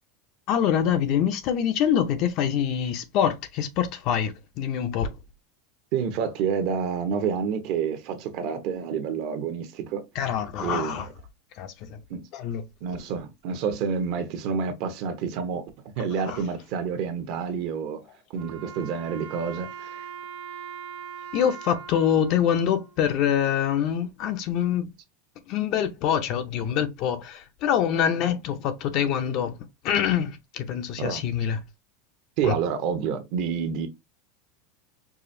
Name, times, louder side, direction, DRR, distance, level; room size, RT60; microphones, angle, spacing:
voice 1, 0.5-5.2 10.1-11.1 11.6-12.0 12.3-12.6 16.3-16.5 21.3-24.9 25.5-29.5 29.8-31.6 32.4-32.5, left 9 dB, 45° left, 0.6 m, -25 dB
voice 2, 5.9-10.0 10.6-11.1 12.1-12.2 12.8-15.7 16.0-18.0 18.3-20.1 31.0-31.2 32.4-33.9, right 6 dB, 50° right, 0.9 m, -28 dB
Wind instrument woodwind instrument, 18.3-23.5, right 7 dB, 80° right, 0.8 m, -41 dB
4.8 x 2.4 x 2.6 m
supercardioid pair, 150°, 0 cm